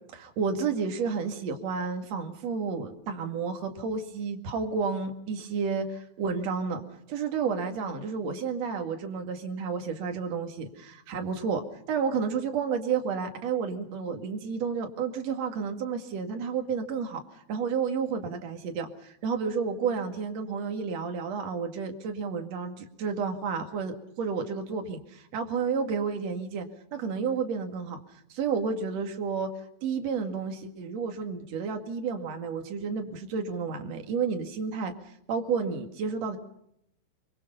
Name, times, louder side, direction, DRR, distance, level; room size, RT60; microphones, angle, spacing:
voice 1, 0.1-5.8 6.2-11.6 11.9-17.2 17.5-26.7 26.9-28.0 28.3-29.5 29.8-34.9 35.3-36.4, right 5 dB, 50° right, 4 dB, 2.1 m, -31 dB
25.0 x 23.5 x 5.5 m, 0.74 s
omnidirectional pair, 6.0 m